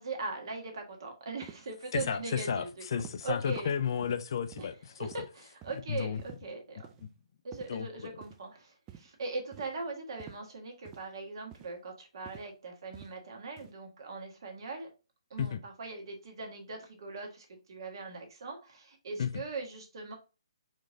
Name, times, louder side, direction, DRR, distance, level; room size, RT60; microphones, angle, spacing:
voice 1, 0.0-3.8 5.0-6.9 7.4-14.9 15.3-20.1, right 3 dB, 50° right, 1.5 m, -40 dB
sound 1, 1.4-1.6 1.9-2.1 2.5-2.6 3.0-3.2 3.5-3.7 4.0-4.2 4.5-4.7 5.0-5.2 5.6-5.8 6.2-6.4 6.8-7.0 7.5-7.7 8.2-8.4 8.9-9.1 9.5-9.7 10.2-10.4 10.8-11.0 11.5-11.7 12.3-12.5 12.9-13.1 13.6-13.7, right 10 dB, 20° right, 0.5 m, -48 dB
voice 2, 1.9-5.2 5.7-6.2 7.0-7.1 7.7-8.2 15.4-15.6 19.2-19.4, left 7 dB, 50° left, 0.5 m, -33 dB
4.4 x 3.1 x 3.7 m
figure-of-eight pair, 135°, 3 cm